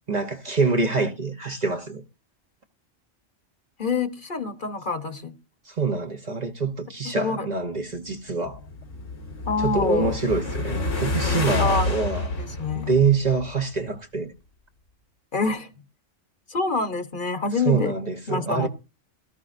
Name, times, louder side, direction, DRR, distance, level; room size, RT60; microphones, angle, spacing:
voice 1, 0.1-2.0 5.7-8.6 9.6-12.3 12.7-14.3 17.6-18.7, right 4 dB, 40° right, 0.9 m, -25 dB
voice 2, 3.8-5.3 7.0-7.5 9.5-10.1 11.6-11.9 12.4-12.9 15.3-15.7 16.5-17.9 18.3-18.7, left 4 dB, 45° left, 1.1 m, -26 dB
sound 1, 8.3-13.8, left 2 dB, 90° left, 2.0 m, -29 dB
17.5 x 13.0 x 2.6 m
omnidirectional pair, 1.2 m